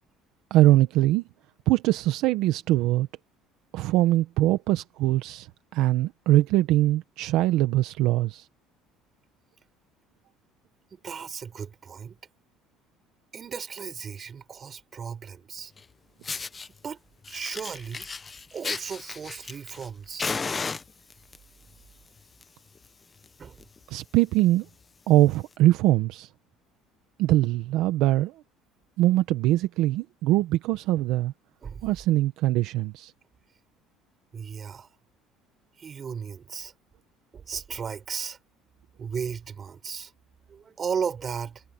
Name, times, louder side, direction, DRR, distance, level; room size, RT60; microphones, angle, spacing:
voice 1, 0.5-1.2 1.7-3.1 3.7-8.5 23.9-24.7 25.1-26.3 27.2-28.3 29.0-31.3 31.8-33.1, right 15 dB, 65° right, 1.1 m, -22 dB
voice 2, 10.9-12.2 13.3-15.7 16.8-17.0 17.3-18.1 18.5-20.3 23.4-23.6 31.6-31.9 34.3-34.9 35.8-36.7 37.3-38.4 39.0-40.1 40.5-41.6, right 7 dB, 30° right, 6.2 m, -35 dB
Fire, 15.8-15.9 16.2-16.7 17.2-19.9 20.2-21.4 22.2-22.4 22.7-22.8 23.2-23.3 23.6-23.8 24.4-24.5 25.4-25.5, left 4 dB, 20° left, 1.0 m, -34 dB
cardioid pair, 140°, 0 cm